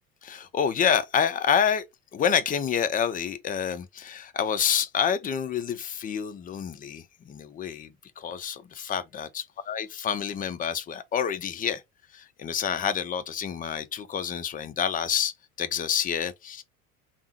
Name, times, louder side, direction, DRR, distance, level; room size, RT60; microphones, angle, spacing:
voice 1, 0.2-1.9 2.1-11.8 12.1-15.3 15.6-16.6, left 8 dB, 20° left, 0.4 m, -28 dB
3.4 x 2.1 x 2.8 m
hypercardioid pair, 70°, 43 cm